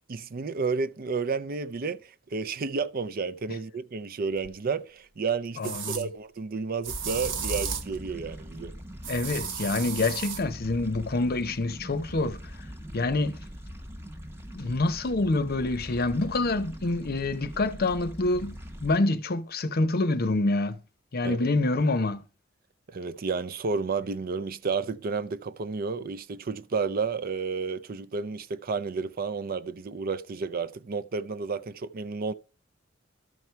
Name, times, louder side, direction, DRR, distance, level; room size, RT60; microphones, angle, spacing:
voice 1, 0.1-8.7 21.2-21.4 22.9-32.3, right 4 dB, 50° right, 0.5 m, -31 dB
sound 1, 4.4-4.5 5.6-6.0 6.8-8.0 9.0-10.4, right 6 dB, 65° right, 1.0 m, -33 dB
voice 2, 5.6-6.1 9.1-12.4 12.9-13.4 14.5-18.6 18.8-20.8 21.1-22.2, left 2 dB, 50° left, 0.7 m, -26 dB
sound 2, 7.0-19.0, equal, 10° right, 0.9 m, -42 dB
12.5 x 4.6 x 5.6 m
head